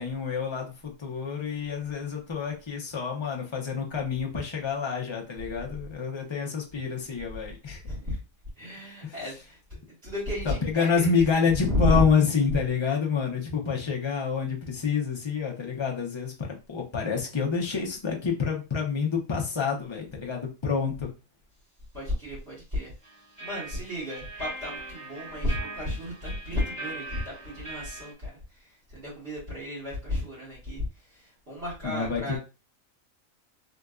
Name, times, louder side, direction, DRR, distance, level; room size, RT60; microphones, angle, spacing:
voice 1, 0.0-7.8 9.0-9.2 10.6-21.1 31.8-32.4, left 6 dB, 30° left, 0 dB, 0.6 m, -28 dB
voice 2, 7.8-8.2 8.6-12.1 21.9-22.9 23.4-32.4, left 1 dB, 50° right, -6 dB, 1.9 m, -32 dB
sound 1, 23.0-28.1, right 2 dB, 5° left, 0.9 m, -40 dB
3.8 x 2.5 x 2.3 m, 0.30 s
omnidirectional pair, 1.4 m